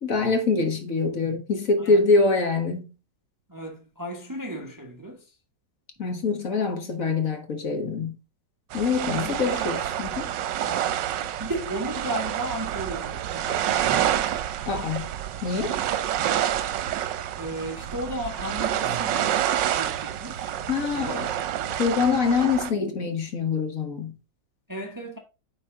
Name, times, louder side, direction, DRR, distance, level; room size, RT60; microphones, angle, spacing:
voice 1, 0.0-2.9 6.0-8.2 8.7-10.3 14.7-15.1 15.4-15.8 18.8-19.1 20.7-21.3 21.8-24.1, left 4 dB, 50° left, 1.6 m, -25 dB
voice 2, 3.5-5.2 9.0-9.4 10.6-11.0 11.4-14.5 15.9-16.0 17.4-19.4 19.7-20.6 20.9-21.5 24.7-25.2, right 1 dB, 15° right, 0.9 m, -35 dB
sound 1, 8.7-22.7, right 11 dB, 80° right, 1.4 m, -28 dB
9.6 x 4.3 x 3.7 m
omnidirectional pair, 1.9 m